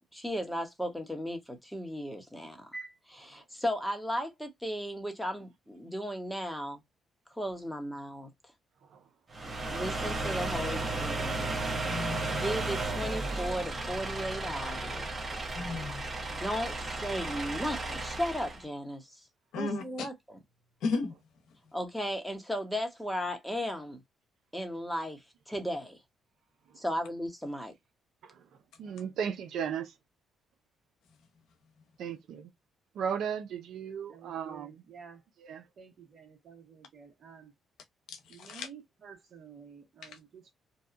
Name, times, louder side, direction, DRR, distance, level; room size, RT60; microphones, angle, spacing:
voice 1, 0.1-6.8 7.4-8.3 9.7-11.5 12.4-15.4 16.4-19.2 19.6-20.4 21.7-24.0 24.5-26.0 26.8-27.7, equal, ahead, 0.9 m, -35 dB
sound 1, 9.3-18.6, right 2 dB, 30° right, 0.9 m, -34 dB
voice 2, 11.8-12.4 15.5-16.0 19.5-20.1 20.8-21.1 38.1-38.7, left 4 dB, 80° left, 0.8 m, -34 dB
voice 3, 28.8-29.9 32.0-32.5 33.0-34.8 35.4-35.6, right 7 dB, 75° right, 0.5 m, -35 dB
voice 4, 34.1-35.2 35.8-37.5 38.3-40.5, right 7 dB, 55° right, 1.3 m, -51 dB
2.8 x 2.3 x 2.4 m
cardioid pair, 90°, 0 cm